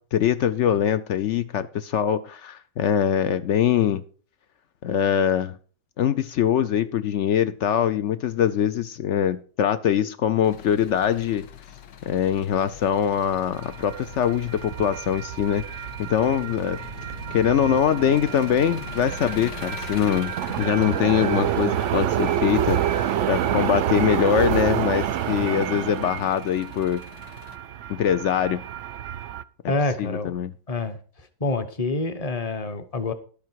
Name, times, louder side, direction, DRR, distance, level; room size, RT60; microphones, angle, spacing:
voice 1, 0.0-4.0 4.8-5.6 6.0-11.5 12.1-15.6 16.0-16.8 17.3-27.0 27.9-28.6 30.0-30.5, left 9 dB, 90° left, 12 dB, 0.6 m, -23 dB
Engine, 10.4-27.6, left 8 dB, 70° left, 1.6 m, -45 dB
Aircraft, 11.2-23.3 23.7-23.8, left 2 dB, 50° left, 2.1 m, -45 dB
sound 1, 13.6-29.4, right 10 dB, 80° right, 0.6 m, -28 dB
voice 2, 29.7-30.3 30.7-31.0 31.4-33.1, left 2 dB, 25° left, 9 dB, 0.9 m, -27 dB
12.0 x 8.5 x 4.6 m, 0.41 s
omnidirectional pair, 2.0 m